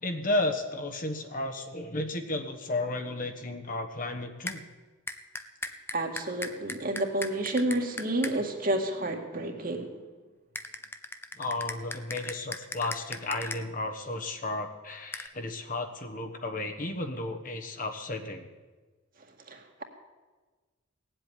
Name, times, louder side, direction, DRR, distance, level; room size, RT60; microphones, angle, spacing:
voice 1, 0.0-4.6 11.4-18.5, left 2 dB, 40° left, 5 dB, 1.2 m, -33 dB
sound 1, 4.5-4.6 5.1-8.3 10.5-13.6 15.1-15.3, left 2 dB, 10° left, 0.6 m, -37 dB
voice 2, 5.9-9.9 19.5-19.8, right 1 dB, 45° right, 3 dB, 1.9 m, -30 dB
18.0 x 7.9 x 9.7 m, 1.3 s
head